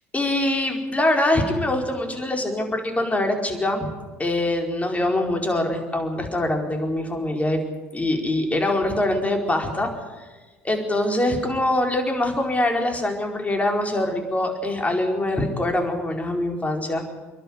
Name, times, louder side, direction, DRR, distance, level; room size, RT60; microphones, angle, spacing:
voice 1, 0.1-3.9 4.2-7.6 7.9-9.9 10.2-10.3 10.6-17.1, left 1 dB, 20° left, 3 dB, 4.7 m, -23 dB
28.0 x 11.5 x 9.9 m, 1.3 s
hypercardioid pair, 65°, 7 cm